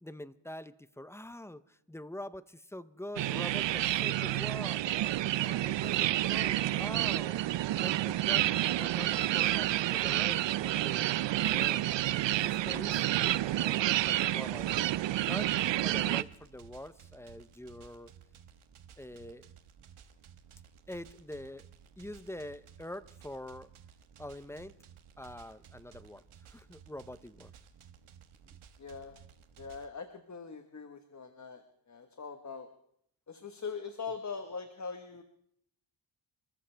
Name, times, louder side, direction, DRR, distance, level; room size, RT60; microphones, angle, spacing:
voice 1, 0.0-4.8 5.4-7.4 7.8-14.7 15.2-18.1 19.0-19.5 20.9-21.7 22.0-23.7 24.2-24.7 25.2-27.5, left 1 dB, 5° left, 15 dB, 0.6 m, -45 dB
sound 1, 3.2-16.2, right 14 dB, 65° right, 0.5 m, -29 dB
sound 2, 11.8-29.9, right 8 dB, 85° right, 1.4 m, -56 dB
voice 2, 28.8-29.1 29.6-32.7 33.3-35.2, left 5 dB, 35° left, 7 dB, 1.3 m, -42 dB
27.0 x 14.0 x 3.4 m, 0.68 s
cardioid pair, 70°, 48 cm